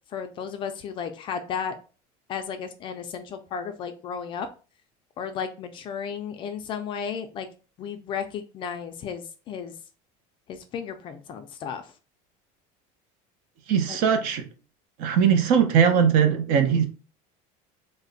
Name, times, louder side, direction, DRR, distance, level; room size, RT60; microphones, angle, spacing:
voice 1, 0.1-1.7 2.3-4.5 5.2-7.5 7.8-9.7 10.5-11.9 13.8-14.0 16.6-16.9, left 7 dB, 30° left, 7 dB, 0.4 m, -34 dB
voice 2, 13.7-14.5 15.0-16.9, right 7 dB, 55° right, 7 dB, 0.7 m, -20 dB
3.2 x 2.1 x 3.9 m, 0.35 s
cardioid pair, 170°, 17 cm